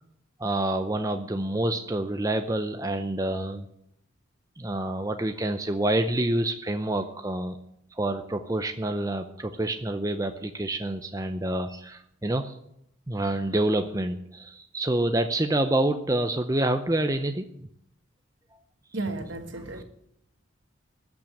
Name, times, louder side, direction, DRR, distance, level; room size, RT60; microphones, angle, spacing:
voice 1, 0.4-3.7 4.6-7.6 7.9-12.6 13.1-17.5, right 1 dB, 15° right, 0.6 m, -27 dB
voice 2, 18.9-19.8, right 2 dB, 60° right, 1.5 m, -33 dB
13.5 x 6.2 x 10.0 m
head